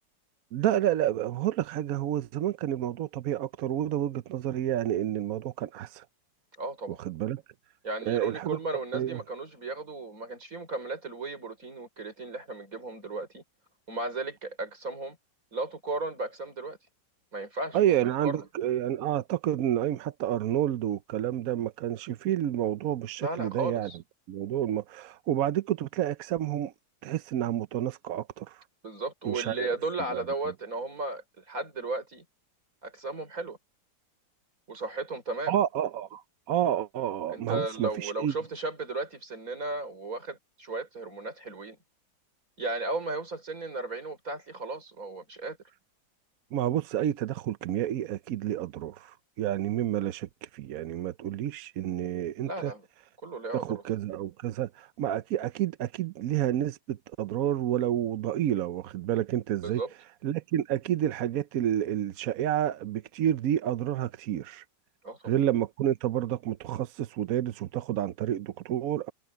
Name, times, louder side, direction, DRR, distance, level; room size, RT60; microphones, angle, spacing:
voice 1, 0.5-6.1 6.9-7.4 8.1-8.6 8.9-9.2 17.7-23.9 24.3-26.7 27.0-28.6 29.2-29.7 30.1-30.2 35.5-38.3 46.5-52.7 53.5-59.8 60.2-64.6 65.2-69.1, right 11 dB, 65° right, 0.9 m, -29 dB
voice 2, 6.6-7.0 7.8-13.4 13.9-15.2 15.5-16.8 17.3-17.8 18.1-18.5 23.2-24.0 28.8-32.2 32.8-33.6 34.7-35.6 37.3-41.8 42.6-45.6 52.4-52.9 53.2-53.8 59.6-59.9 65.0-65.4, right 2 dB, 45° right, 5.9 m, -35 dB
omnidirectional pair, 2.0 m